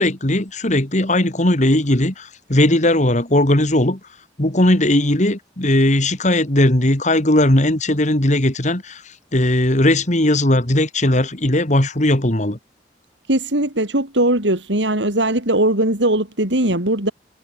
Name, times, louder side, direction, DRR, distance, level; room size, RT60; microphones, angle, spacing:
voice 1, 0.0-4.0 4.4-9.0 9.3-12.6, left 1 dB, 40° left, 2.9 m, -17 dB
voice 2, 13.3-17.1, right 1 dB, 90° right, 5.9 m, -19 dB
head